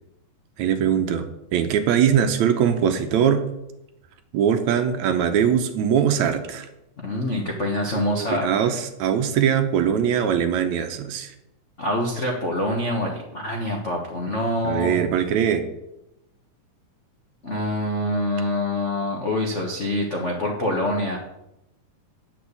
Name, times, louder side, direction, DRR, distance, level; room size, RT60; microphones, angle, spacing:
voice 1, 0.6-1.2 1.5-3.5 4.3-6.7 7.9-11.3 14.6-15.6, right 8 dB, 70° right, 7 dB, 2.1 m, -21 dB
voice 2, 7.0-8.5 11.8-14.9 17.4-21.2, left 1 dB, 55° left, 0 dB, 0.8 m, -25 dB
9.2 x 6.3 x 8.3 m, 0.87 s
omnidirectional pair, 3.5 m